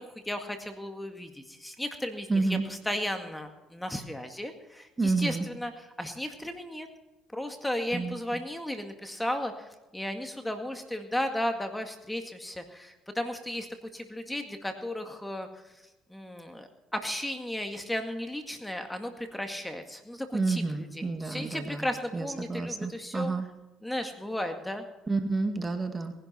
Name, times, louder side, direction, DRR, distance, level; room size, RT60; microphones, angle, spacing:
voice 1, 0.0-6.9 7.3-13.7 13.9-15.5 16.1-23.3 23.8-24.8, left 1 dB, 10° left, 6 dB, 1.9 m, -35 dB
voice 2, 2.3-2.6 5.0-5.5 7.9-8.2 20.3-21.9 22.1-23.5 25.1-26.1, right 3 dB, 25° right, 6 dB, 2.0 m, -29 dB
19.0 x 11.5 x 4.4 m, 1.1 s
supercardioid pair, 75°, 0 cm